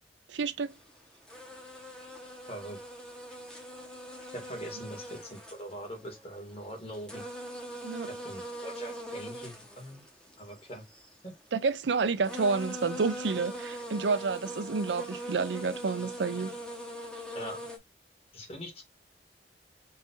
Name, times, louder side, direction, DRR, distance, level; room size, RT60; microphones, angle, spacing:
voice 1, 0.3-0.7 7.8-8.1 11.5-16.5, right 4 dB, 90° right, 0.5 m, -29 dB
sound 1, 0.7-0.9 1.3-6.3 6.7-11.1 11.9-12.0 12.2-17.8, equal, 5° left, 1.1 m, -42 dB
voice 2, 2.5-2.8 4.3-7.2 8.2-10.0 10.4-10.8 11.2-11.3 17.3-17.6 18.3-18.8, equal, 35° left, 2.0 m, -42 dB
5.4 x 2.6 x 3.7 m
head